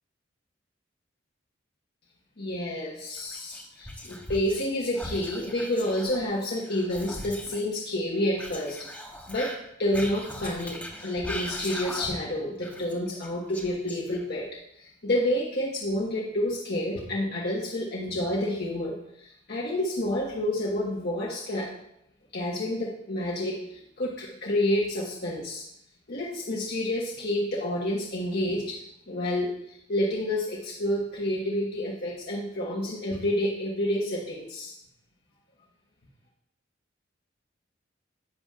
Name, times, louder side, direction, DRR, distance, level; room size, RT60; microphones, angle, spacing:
voice 1, 2.4-8.8 9.3-9.5 9.8-14.5 14.8-21.7 22.3-25.6 26.1-28.8 29.1-34.7, left 1 dB, 55° left, -4 dB, 1.3 m, -29 dB
Whispering, 3.1-4.7 4.9-7.6 8.4-12.3 12.6-14.4, left 1 dB, 10° left, 1.2 m, -39 dB
11.0 x 7.9 x 2.4 m, 0.77 s
head